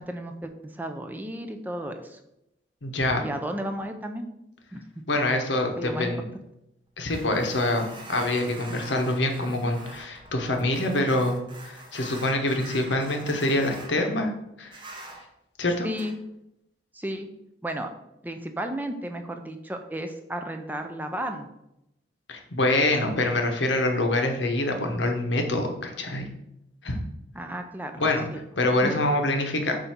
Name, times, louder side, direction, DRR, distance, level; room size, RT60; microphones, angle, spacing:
voice 1, 0.0-2.2 3.2-4.3 4.7-4.8 5.8-6.1 15.8-16.2 16.9-17.3 17.6-17.9 18.2-21.5 27.3-28.0 28.3-28.4 28.8-29.0, right 1 dB, 10° right, 5 dB, 0.5 m, -33 dB
voice 2, 2.8-3.3 5.1-6.2 7.0-11.4 11.6-14.3 14.6-14.7 15.6-15.9 22.3-26.3 26.8-27.0 28.0-28.2 28.6-29.8, left 1 dB, 85° left, 4 dB, 1.1 m, -25 dB
sound 1, 7.1-13.9 14.7-15.2 15.9-16.1, right 2 dB, 25° right, 0.9 m, -44 dB
7.3 x 2.7 x 5.9 m, 0.84 s
head